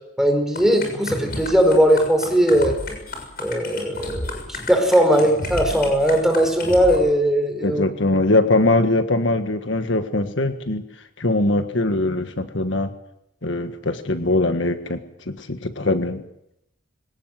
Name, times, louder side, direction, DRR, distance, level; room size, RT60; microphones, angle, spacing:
voice 1, 0.2-2.8 3.4-7.8, equal, ahead, 4 dB, 5.0 m, -19 dB
sound 1, 0.5-7.0, left 2 dB, 50° left, 6.9 m, -32 dB
voice 2, 7.6-10.8 11.2-12.9 13.4-15.0 15.3-16.2, left 2 dB, 70° left, 8 dB, 1.6 m, -21 dB
25.0 x 18.0 x 7.8 m, 0.82 s
head